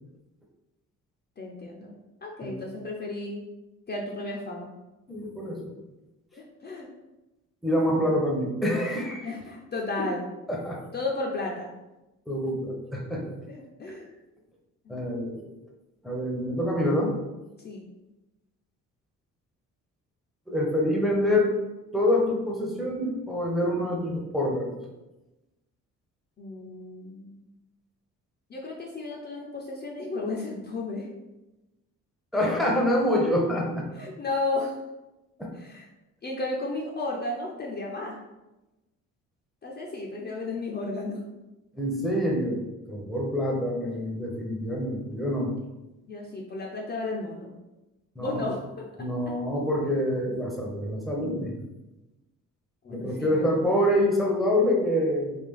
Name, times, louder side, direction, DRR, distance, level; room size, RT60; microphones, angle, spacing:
voice 1, 1.4-1.9 2.2-3.4 3.9-4.7 6.3-6.9 8.0-8.4 9.2-10.3 10.9-11.7 13.5-14.1 14.8-15.3 17.6-17.8 26.4-27.4 28.5-31.1 32.3-32.6 33.9-34.8 35.5-35.9 36.2-38.2 39.6-41.3 46.1-47.5 48.2-49.3 52.8-53.7, left 2 dB, 35° left, -1 dB, 0.6 m, -34 dB
voice 2, 5.1-5.7 7.6-9.3 10.0-10.1 10.5-10.8 12.3-13.4 14.9-15.4 16.0-17.1 20.5-21.6 21.9-24.8 32.3-33.9 35.4-35.5 41.8-45.5 48.2-48.5 49.0-51.5 52.9-55.4, left 1 dB, ahead, -1 dB, 0.7 m, -26 dB
3.4 x 2.3 x 3.6 m, 1.0 s
cardioid pair, 90°, 30 cm